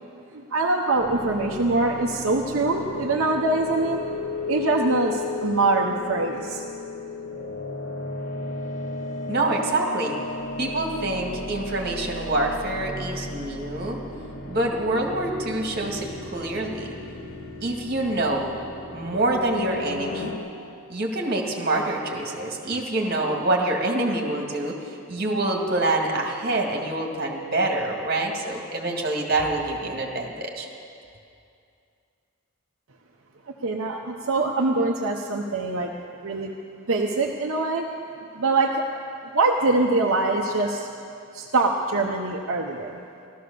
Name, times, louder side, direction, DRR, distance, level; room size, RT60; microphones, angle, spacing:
voice 1, 0.3-4.0 4.5-6.6 33.6-35.9 36.2-36.5 36.9-37.9 38.3-38.8 39.3-40.9 41.3-43.0, right 3 dB, 70° right, -1 dB, 0.9 m, -23 dB
sound 1, 0.9-20.4, left 3 dB, 65° left, 2.0 m, -34 dB
voice 2, 9.3-10.2 10.6-14.0 14.5-16.9 17.6-18.5 18.9-20.3 20.9-30.7, right 2 dB, 45° right, 0 dB, 2.0 m, -26 dB
16.0 x 13.5 x 6.8 m, 2.5 s
head